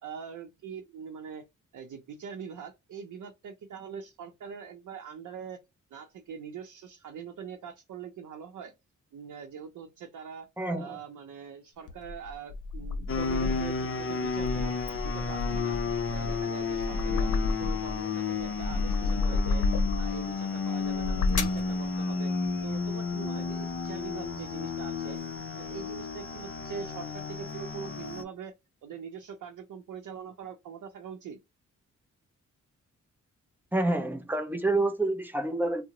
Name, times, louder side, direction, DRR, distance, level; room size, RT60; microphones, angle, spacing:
voice 1, 0.0-1.4 1.7-5.6 5.9-8.7 9.1-10.5 10.7-14.7 15.0-15.8 16.1-19.6 19.9-22.3 22.6-25.2 25.6-28.5 28.8-31.4, right 7 dB, 85° right, 0.6 m, -42 dB
voice 2, 10.6-11.0 33.7-35.8, right 2 dB, 5° right, 0.5 m, -28 dB
sound 1, 11.9-13.8 14.2-18.0 18.4-20.2 20.8-21.7, left 3 dB, 90° left, 0.6 m, -30 dB
sound 2, 13.1-28.2, left 5 dB, 45° left, 0.5 m, -32 dB
3.6 x 2.0 x 2.9 m
wide cardioid pair, 155°, 30 cm